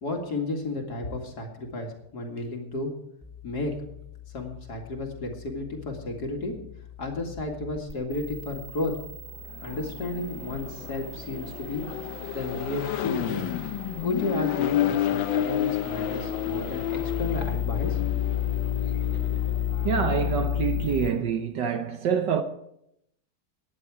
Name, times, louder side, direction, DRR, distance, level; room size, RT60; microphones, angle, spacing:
voice 1, 0.0-2.9 3.4-3.7 4.3-6.5 7.0-8.9 9.6-11.9 12.3-13.5 14.0-18.1, left 2 dB, 50° left, 2.6 m, -32 dB
sound 1, 3.2-21.1, left 9 dB, ahead, 2.7 m, -34 dB
Accelerating revving vroom, 9.5-20.0, left 11 dB, 70° left, 1.3 m, -31 dB
voice 2, 19.8-22.4, right 7 dB, 65° right, 1.4 m, -26 dB
17.5 x 10.5 x 4.9 m
omnidirectional pair, 2.3 m